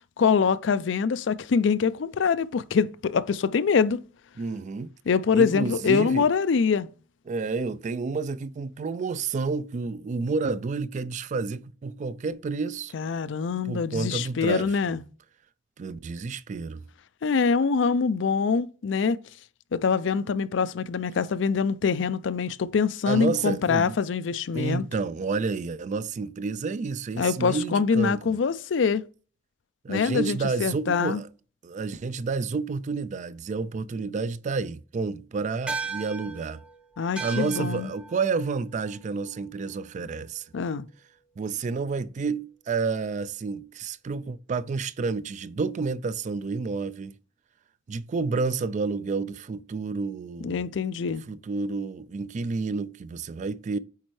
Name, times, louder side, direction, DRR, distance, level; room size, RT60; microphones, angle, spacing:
voice 1, 0.2-4.0 5.1-6.9 12.9-15.0 17.2-19.2 19.7-24.9 27.2-29.0 29.9-31.2 37.0-37.9 40.5-40.9 50.4-51.2, left 5 dB, 75° left, 0.4 m, -24 dB
voice 2, 4.4-4.9 5.3-6.3 7.3-12.9 13.7-15.0 15.8-16.9 23.1-24.0 24.5-28.4 29.8-31.3 31.6-36.6 37.2-40.5 41.4-47.2 47.9-50.6 51.3-53.8, right 4 dB, 40° right, 0.3 m, -30 dB
sound 1, 35.7-40.3, right 4 dB, 5° right, 0.7 m, -38 dB
8.3 x 4.4 x 3.2 m
head